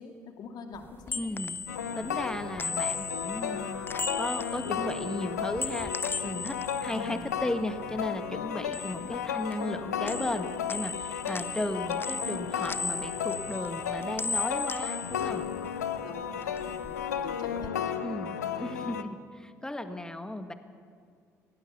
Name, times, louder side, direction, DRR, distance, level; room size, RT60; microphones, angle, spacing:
voice 1, 0.0-1.3 1.9-2.2 6.9-7.2 8.8-9.2 16.0-17.7 18.3-19.0, left 4 dB, 50° left, 5 dB, 2.5 m, -45 dB
sound 1, 0.8-8.1 8.4-9.8 10.1-16.1 16.4-17.7, left 4 dB, 25° left, 0.7 m, -38 dB
voice 2, 1.1-1.5 2.0-3.9 4.2-5.9 6.2-6.6 6.8-15.5 18.0-20.5, left 1 dB, 10° left, 8 dB, 1.7 m, -35 dB
sound 2, 1.7-19.0, left 8 dB, 80° left, 0.8 m, -34 dB
24.0 x 17.0 x 7.0 m, 2.2 s
figure-of-eight pair, 50°, 9 cm